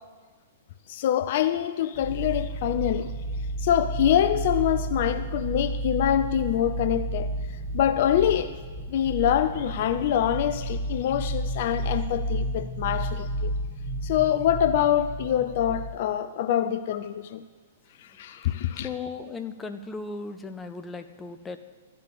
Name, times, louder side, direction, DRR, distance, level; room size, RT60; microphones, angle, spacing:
voice 1, 0.9-3.1 3.6-7.3 7.7-8.6 8.9-13.5 14.0-17.4 18.2-18.9, left 10 dB, 50° left, 0.5 m, -25 dB
sound 1, 1.9-15.9, right 1 dB, 15° right, 2.2 m, -32 dB
voice 2, 18.7-21.6, left 4 dB, 10° left, 0.8 m, -36 dB
13.5 x 7.7 x 8.4 m
figure-of-eight pair, 110°, 0 cm